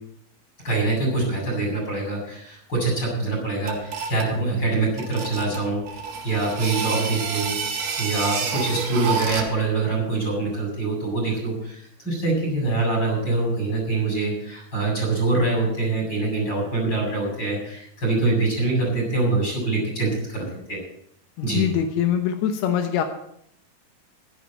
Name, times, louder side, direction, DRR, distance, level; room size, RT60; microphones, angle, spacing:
voice 1, 0.6-20.8 21.4-21.7, right 3 dB, 25° left, -1 dB, 8.3 m, -24 dB
sound 1, 3.7-4.3 5.0-9.6, right 5 dB, 60° right, 3.5 m, -29 dB
voice 2, 21.4-23.0, left 9 dB, 85° left, 5 dB, 3.0 m, -23 dB
15.5 x 12.5 x 4.4 m, 0.70 s
omnidirectional pair, 4.5 m